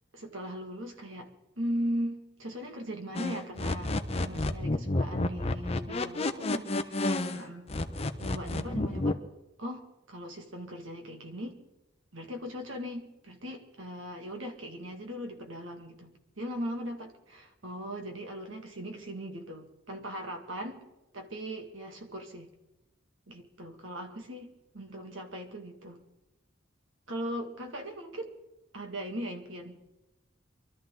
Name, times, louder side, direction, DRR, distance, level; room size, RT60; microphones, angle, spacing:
voice 1, 0.1-7.8 8.2-9.2 9.6-11.6 12.1-20.9 21.1-22.5 23.3-26.0 27.1-28.3 28.7-29.8, equal, 85° right, 4 dB, 2.3 m, -39 dB
sound 1, 3.2-7.4 7.7-9.1, left 2 dB, 30° left, 0.9 m, -30 dB
24.0 x 13.0 x 4.0 m, 0.96 s
head